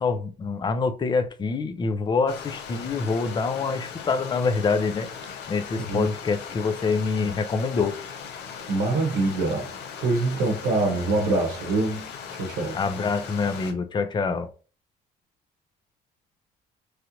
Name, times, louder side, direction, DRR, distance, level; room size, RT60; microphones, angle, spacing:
voice 1, 0.0-5.1 5.5-8.0 12.7-14.5, left 4 dB, 25° left, 0.5 m, -26 dB
Stream, 2.3-13.7, left 6 dB, 80° left, 0.7 m, -39 dB
voice 2, 8.7-9.7 10.0-12.8, right 2 dB, 85° right, 0.8 m, -25 dB
3.2 x 2.5 x 2.9 m
cardioid pair, 110°, 17 cm